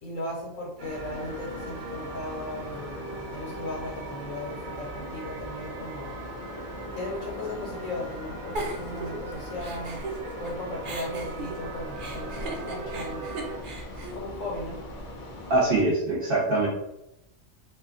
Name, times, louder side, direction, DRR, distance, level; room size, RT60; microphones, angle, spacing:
voice 1, 0.0-6.1 6.9-10.0 10.4-13.3 14.1-14.8, left 1 dB, 75° left, -3 dB, 1.3 m, -37 dB
sound 1, 0.8-15.8, left 2 dB, 60° left, 0.5 m, -41 dB
sound 2, 0.8-13.6, right 3 dB, 85° right, 1.0 m, -41 dB
Giggle, 8.6-10.5 10.8-15.1, right 2 dB, 65° right, 0.5 m, -37 dB
voice 2, 15.5-16.7, right 2 dB, 45° right, -4 dB, 1.0 m, -23 dB
2.7 x 2.3 x 3.6 m, 0.85 s
omnidirectional pair, 1.4 m